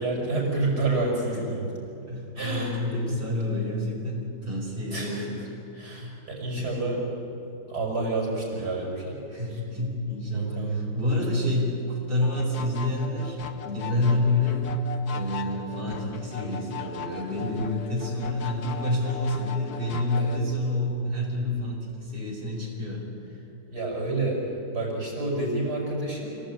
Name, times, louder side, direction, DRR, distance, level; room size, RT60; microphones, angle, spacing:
voice 1, 0.0-1.7 2.4-2.8 3.1-3.2 4.9-5.3 5.7-7.0 7.7-9.2 9.5-9.6 10.3-10.8 20.2-20.5 23.7-24.4 24.7-26.4, right 2 dB, 65° right, -1 dB, 6.9 m, -29 dB
voice 2, 2.1-5.4 5.9-6.2 6.6-6.9 9.3-14.8 15.1-23.4, left 1 dB, 30° right, -3 dB, 5.0 m, -28 dB
sound 1, 12.2-20.4, left 6 dB, 65° left, 1.5 m, -39 dB
27.5 x 17.5 x 9.1 m, 2.8 s
omnidirectional pair, 1.8 m